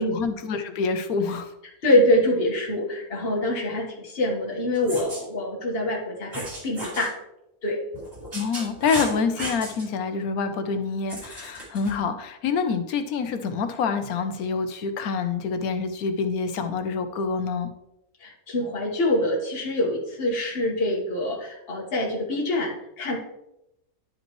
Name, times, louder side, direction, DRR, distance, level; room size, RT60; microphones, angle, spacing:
voice 1, 0.0-1.5 8.3-17.7, left 5 dB, 80° left, 8 dB, 1.3 m, -27 dB
voice 2, 1.8-7.2 7.6-7.8 18.2-23.2, left 1 dB, 40° left, -1 dB, 1.7 m, -25 dB
sound 1, 4.7-5.2 6.3-7.1 7.9-9.9 11.1-11.9, right 1 dB, 40° right, 3.0 m, -35 dB
11.0 x 5.2 x 3.1 m, 0.88 s
omnidirectional pair, 1.5 m